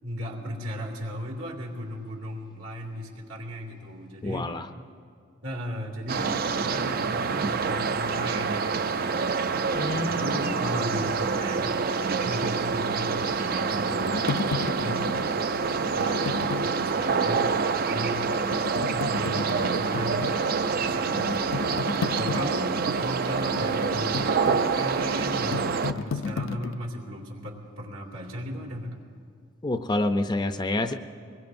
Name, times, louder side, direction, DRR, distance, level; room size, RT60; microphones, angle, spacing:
voice 1, 0.0-4.5 5.4-9.4 9.9-11.8 12.2-15.1 15.9-17.5 17.8-18.3 18.7-20.3 20.8-24.3 24.7-29.0, equal, 85° right, -2 dB, 2.5 m, -36 dB
voice 2, 4.2-4.7 9.7-10.5 29.6-30.9, left 2 dB, 20° left, 8 dB, 0.5 m, -28 dB
sound 1, 6.1-25.9, right 5 dB, 45° right, 0.4 m, -27 dB
sound 2, 13.2-17.2 17.7-17.8 18.3-26.8, left 4 dB, 75° left, 0.5 m, -34 dB
24.0 x 21.5 x 2.6 m, 2.2 s
head